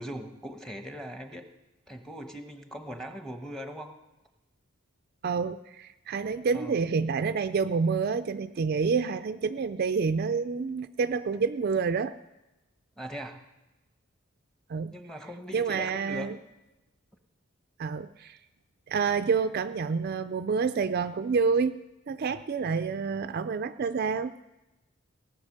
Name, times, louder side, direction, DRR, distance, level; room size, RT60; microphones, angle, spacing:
voice 1, 0.0-1.5 1.9-3.9 6.5-6.8 13.0-13.4 14.9-16.3, equal, ahead, 6 dB, 1.0 m, -40 dB
voice 2, 5.2-12.1 14.7-14.9 15.5-16.4 17.8-18.4 18.9-21.8 22.1-24.4, right 5 dB, 50° right, 11 dB, 0.4 m, -28 dB
17.5 x 8.0 x 6.5 m, 1.0 s
head